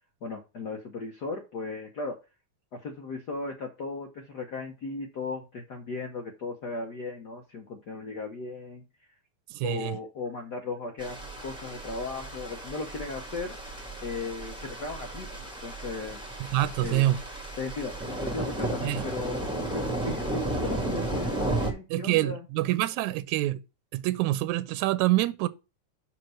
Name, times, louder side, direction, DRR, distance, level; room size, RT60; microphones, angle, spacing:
voice 1, 0.2-2.2 2.7-8.9 9.6-13.5 14.0-16.2 16.8-17.2 17.6-22.5, left 3 dB, 90° left, 0.9 m, -36 dB
voice 2, 9.5-9.9 16.5-17.2 18.8-19.0 21.9-23.6 23.9-25.5, right 16 dB, 80° right, 1.9 m, -26 dB
sound 1, 11.0-21.7, right 2 dB, 5° right, 1.0 m, -34 dB
5.9 x 4.5 x 6.3 m
omnidirectional pair, 3.4 m